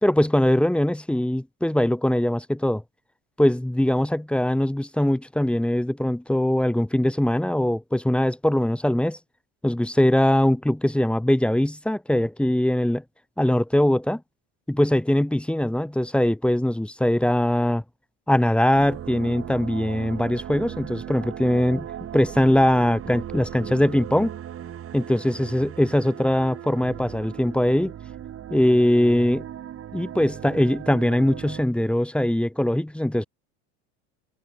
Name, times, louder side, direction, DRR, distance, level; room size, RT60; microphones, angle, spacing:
voice 1, 0.0-2.8 3.4-9.2 9.6-13.0 13.4-14.2 14.7-17.8 18.3-21.9 22.1-24.3 24.9-27.9 28.5-29.4 29.9-33.2, left 1 dB, 5° left, 1.8 m, -21 dB
sound 1, 18.7-31.6, right 10 dB, 35° right, 6.8 m, -37 dB
supercardioid pair, 115°, 37 cm